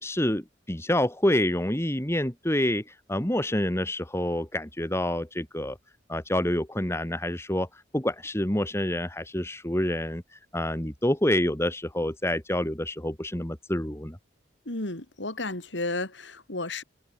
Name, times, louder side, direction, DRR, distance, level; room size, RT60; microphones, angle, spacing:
voice 1, 0.0-2.8 3.1-5.8 6.1-7.7 7.9-14.2, left 1 dB, 15° left, 2.0 m, -27 dB
voice 2, 14.6-16.8, left 2 dB, 70° left, 3.4 m, -33 dB
head